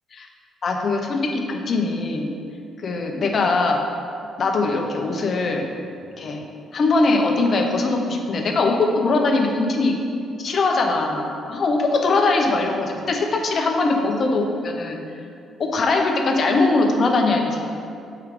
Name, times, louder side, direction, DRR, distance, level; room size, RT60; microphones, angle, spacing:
voice 1, 0.6-2.3 2.8-3.8 4.4-5.7 6.2-6.4 6.7-10.0 10.4-15.0 15.6-17.7, left 3 dB, 50° left, 3 dB, 0.8 m, -21 dB
7.3 x 4.6 x 3.8 m, 2.5 s
cardioid pair, 90°, 0 cm